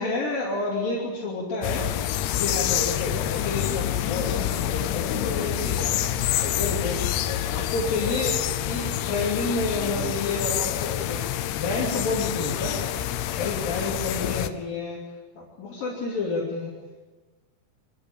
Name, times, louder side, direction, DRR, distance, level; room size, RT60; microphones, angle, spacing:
voice 1, 0.0-15.0 15.4-16.7, left 2 dB, 60° left, -4 dB, 4.6 m, -30 dB
sound 1, 1.6-14.5, left 12 dB, 85° left, 2.9 m, -27 dB
23.5 x 14.5 x 8.7 m, 1.2 s
omnidirectional pair, 4.7 m